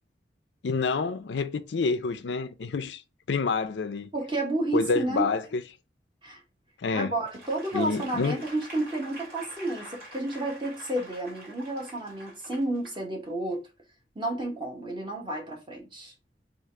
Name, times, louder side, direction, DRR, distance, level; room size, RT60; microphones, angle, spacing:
voice 1, 0.6-3.0 3.3-4.1 4.7-5.6 6.8-7.1 7.7-8.4, left 4 dB, 85° left, 0.5 m, -28 dB
voice 2, 4.1-5.3 6.2-6.4 6.9-13.6 14.1-16.1, right 2 dB, 25° right, 1.2 m, -31 dB
Applause / Crowd, 7.3-13.0 13.5-13.7, right 1 dB, 55° right, 2.2 m, -46 dB
3.7 x 2.5 x 4.5 m
head